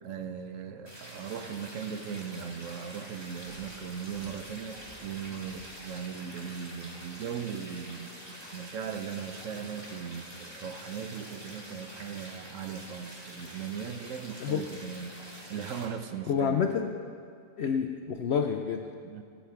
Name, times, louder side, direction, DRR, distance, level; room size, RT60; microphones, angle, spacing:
voice 1, 0.0-15.2 15.5-16.7 19.0-19.2, right 7 dB, 65° right, 9 dB, 0.9 m, -38 dB
sound 1, 0.9-15.8, equal, 15° right, 1.8 m, -46 dB
Thump thud, 3.5-6.1, right 2 dB, 40° right, 2.7 m, -56 dB
voice 2, 16.3-16.9 17.6-18.9, left 7 dB, 90° left, 6 dB, 0.5 m, -28 dB
15.0 x 9.2 x 4.6 m, 2.3 s
omnidirectional pair, 1.7 m